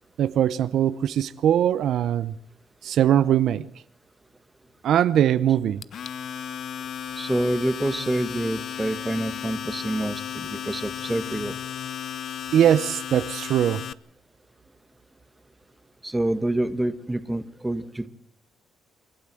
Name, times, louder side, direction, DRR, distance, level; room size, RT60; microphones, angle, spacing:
voice 1, 0.2-2.3 2.8-3.6 4.8-5.8 12.5-13.8, right 10 dB, 75° right, 0.8 m, -21 dB
Domestic sounds home sounds, 5.8-13.9, left 9 dB, 60° left, 0.8 m, -34 dB
voice 2, 7.1-11.6 16.0-18.1, right 1 dB, 10° right, 1.6 m, -27 dB
28.5 x 12.0 x 7.8 m
cardioid pair, 90°, 0 cm